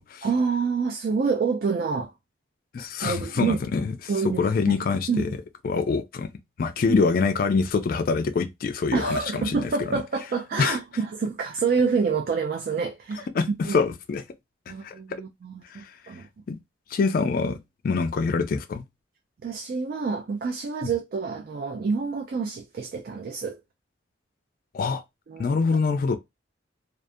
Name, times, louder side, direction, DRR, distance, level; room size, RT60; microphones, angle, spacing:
voice 1, 0.2-2.1 2.8-3.6 4.1-4.8 5.1-5.3 6.9-7.0 8.9-13.3 13.6-13.8 14.7-16.3 19.4-23.6 25.3-25.6, right 5 dB, 50° right, 0.3 m, -27 dB
voice 2, 2.7-3.9 4.4-5.3 5.6-6.3 6.6-10.0 10.6-10.8 13.3-14.2 14.7-14.9 15.6-15.9 16.5-16.6 16.9-17.6 17.8-18.8 24.7-25.0 25.4-26.2, left 4 dB, 50° left, 0.3 m, -25 dB
2.4 x 2.4 x 2.5 m
head